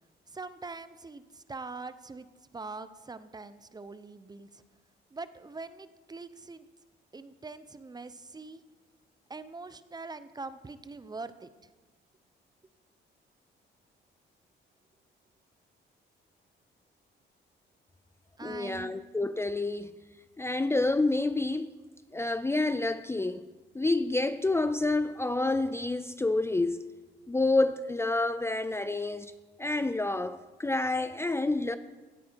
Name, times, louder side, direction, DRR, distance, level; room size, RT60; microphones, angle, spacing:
voice 1, 0.3-2.3 2.5-4.6 5.1-6.7 7.1-8.6 9.3-11.5 18.4-18.9, right 3 dB, 20° right, 0.7 m, -43 dB
voice 2, 18.4-19.9 20.4-21.7 22.1-23.4 23.7-26.8 27.3-29.3 29.6-31.8, left 2 dB, 15° left, 0.4 m, -28 dB
16.5 x 9.2 x 4.6 m
cardioid pair, 90°, 20 cm